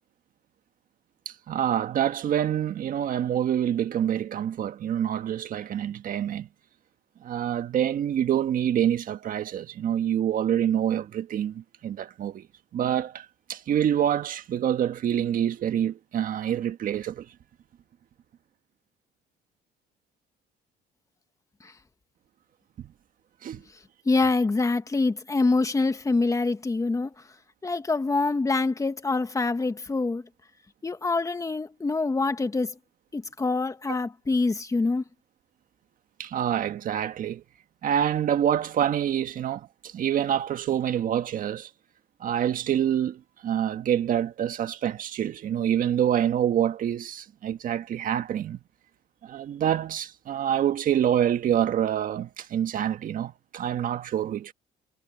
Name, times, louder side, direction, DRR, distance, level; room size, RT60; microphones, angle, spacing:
voice 1, 1.2-6.5 7.2-12.5 12.7-17.3 22.8-22.9 23.4-23.6 36.2-37.4 37.8-41.7 42.2-48.6 49.2-54.5, right 10 dB, 55° right, 1.7 m, -26 dB
voice 2, 24.1-27.1 27.6-30.2 30.8-32.8 33.1-35.0, left 3 dB, 20° left, 1.8 m, -25 dB
cardioid pair, 110°, 17 cm